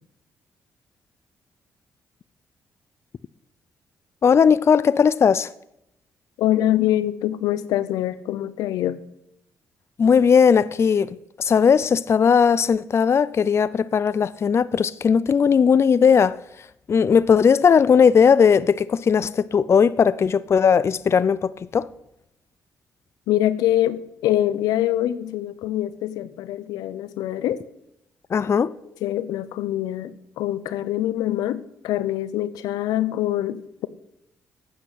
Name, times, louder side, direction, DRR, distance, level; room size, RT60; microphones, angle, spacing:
voice 1, 4.2-5.5 10.0-16.4 16.9-21.9 28.3-28.7, left 6 dB, 45° left, 0.5 m, -18 dB
voice 2, 6.4-9.0 23.3-27.6 29.0-33.9, left 13 dB, 85° left, 0.7 m, -24 dB
12.5 x 8.5 x 8.0 m
supercardioid pair, 65°, 6 cm